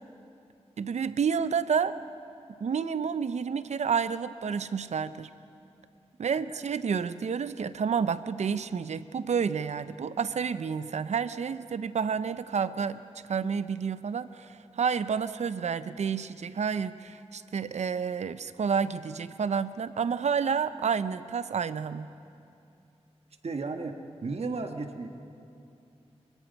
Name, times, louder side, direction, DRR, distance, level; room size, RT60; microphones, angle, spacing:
voice 1, 0.8-1.9 2.6-5.3 6.2-13.0 13.3-22.1, right 6 dB, 80° right, 14 dB, 0.6 m, -30 dB
voice 2, 23.4-23.9 24.2-25.1, right 3 dB, 65° right, 5 dB, 1.5 m, -33 dB
24.0 x 23.0 x 5.4 m, 2.6 s
wide cardioid pair, 110°, 11 cm